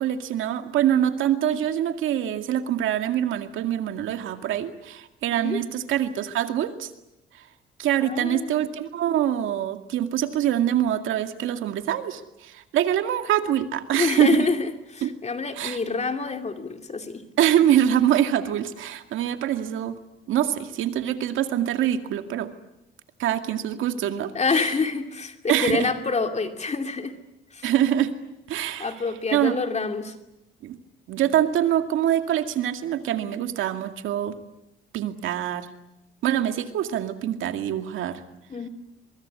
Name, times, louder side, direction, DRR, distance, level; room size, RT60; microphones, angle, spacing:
voice 1, 0.0-6.9 7.8-14.5 15.0-15.1 15.5-15.8 17.4-20.0 20.3-22.5 23.2-24.7 25.5-25.9 27.6-28.1 28.5-29.0 29.3-29.6 30.6-30.8 31.1-34.4 34.9-35.7 36.2-38.2, right 11 dB, 85° right, 7 dB, 2.2 m, -24 dB
voice 2, 8.0-8.5 14.0-17.2 24.3-27.1 27.5-27.7 28.8-30.1 38.5-38.7, left 4 dB, 35° left, 6 dB, 2.6 m, -27 dB
23.5 x 23.0 x 9.7 m, 0.90 s
cardioid pair, 90°, 20 cm